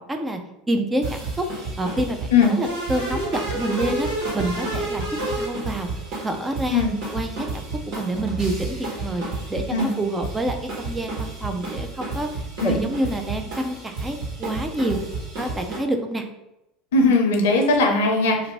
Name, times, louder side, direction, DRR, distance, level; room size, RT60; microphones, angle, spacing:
voice 1, 0.1-0.4 0.7-1.5 1.8-2.3 2.6-4.1 4.3-5.0 5.4-5.9 6.2-6.8 7.1-7.5 7.9-9.2 9.5-10.6 10.8-15.0 15.4-16.3, right 1 dB, 15° right, 5 dB, 0.5 m, -27 dB
sound 1, 1.0-15.8, right 3 dB, 55° right, 1.3 m, -32 dB
sound 2, 2.6-6.2, right 1 dB, 85° right, 1.1 m, -29 dB
voice 2, 16.9-18.5, left 3 dB, 85° left, 3 dB, 0.6 m, -19 dB
2.5 x 2.5 x 3.1 m, 0.87 s
hypercardioid pair, 95°, 0 cm